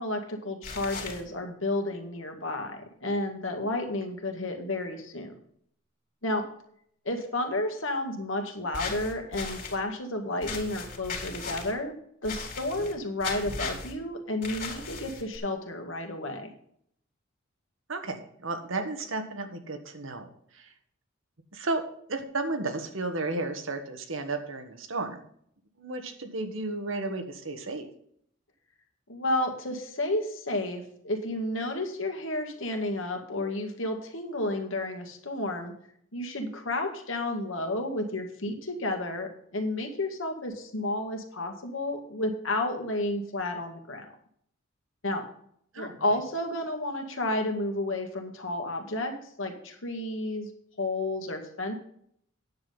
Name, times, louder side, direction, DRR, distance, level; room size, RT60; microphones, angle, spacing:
voice 1, 0.0-5.3 6.2-6.5 7.1-12.0 12.2-16.5 29.1-35.7 36.1-44.1 45.0-45.2 45.8-50.5 50.8-51.7, left 1 dB, 70° left, 4 dB, 2.0 m, -31 dB
sound 1, 0.6-1.2 8.7-9.8 10.4-11.7 12.2-12.9 13.2-13.9 14.4-15.4, left 4 dB, 45° left, 2.9 m, -37 dB
voice 2, 17.9-20.3 20.5-20.7 21.5-21.8 22.1-25.2 25.8-27.9 45.7-46.0, right 2 dB, 75° right, 6 dB, 1.5 m, -33 dB
9.7 x 7.7 x 5.4 m, 0.66 s
head